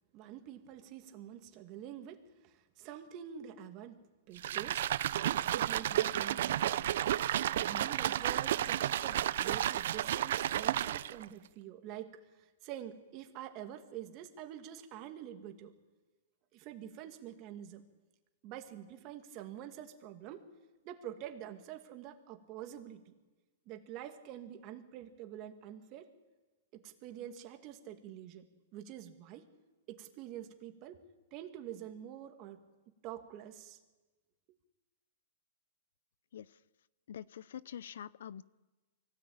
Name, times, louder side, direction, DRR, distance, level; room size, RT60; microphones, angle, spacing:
voice 1, 0.1-4.9 5.5-7.0 7.3-15.7 16.5-17.8 18.4-20.5 20.8-23.1 23.7-26.1 26.7-28.5 28.7-29.5 29.9-31.0 31.3-32.6 33.0-33.8, right 10 dB, 35° right, 6 dB, 2.3 m, -47 dB
sound 1, 4.4-11.3, right 11 dB, 65° right, 0.7 m, -32 dB
voice 2, 37.1-38.4, left 9 dB, 75° left, 20 dB, 0.6 m, -45 dB
24.0 x 17.0 x 8.9 m, 1.2 s
hypercardioid pair, 150°, 0 cm